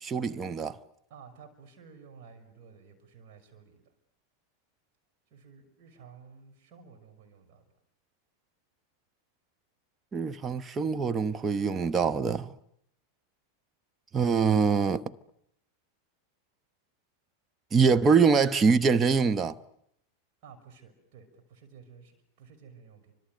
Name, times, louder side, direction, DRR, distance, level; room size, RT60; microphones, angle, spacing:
voice 1, 0.0-0.8 10.1-12.5 14.1-15.0 17.7-19.6, right 5 dB, 20° right, 1.0 m, -24 dB
voice 2, 1.1-3.8 5.3-7.6 20.4-23.1, right 6 dB, 45° right, 6.3 m, -53 dB
29.5 x 26.0 x 6.6 m
figure-of-eight pair, 90°, 0 cm